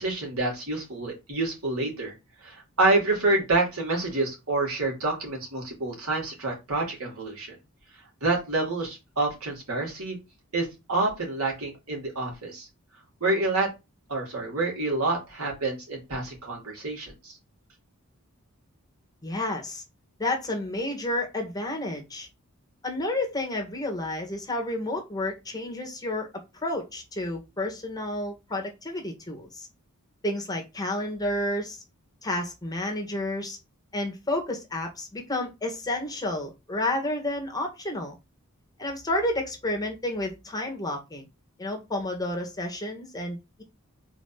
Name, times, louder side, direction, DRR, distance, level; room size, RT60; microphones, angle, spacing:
voice 1, 0.0-2.1 2.4-7.5 8.2-10.2 10.5-12.7 13.2-13.7 14.1-17.4, right 2 dB, 75° right, 3.0 m, -27 dB
voice 2, 19.2-19.8 20.2-22.3 22.8-26.3 26.6-29.7 30.2-31.8 32.2-33.6 33.9-38.2 38.8-41.2 41.6-43.6, left 1 dB, 15° left, 1.7 m, -30 dB
4.5 x 4.2 x 5.7 m
head